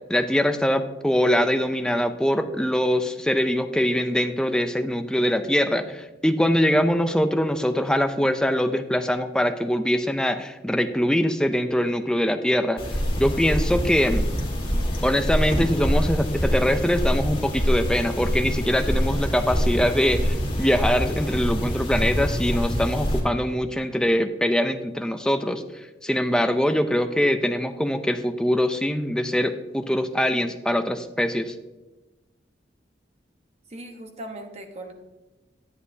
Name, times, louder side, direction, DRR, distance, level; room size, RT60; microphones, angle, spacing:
voice 1, 0.1-12.8 13.2-14.3 15.0-31.6, equal, 5° left, 8 dB, 0.4 m, -23 dB
sound 1, 12.8-23.2, equal, 30° left, 1.7 m, -25 dB
voice 2, 33.7-34.9, right 1 dB, 35° right, 4 dB, 1.0 m, -39 dB
9.7 x 8.3 x 2.7 m, 1.1 s
head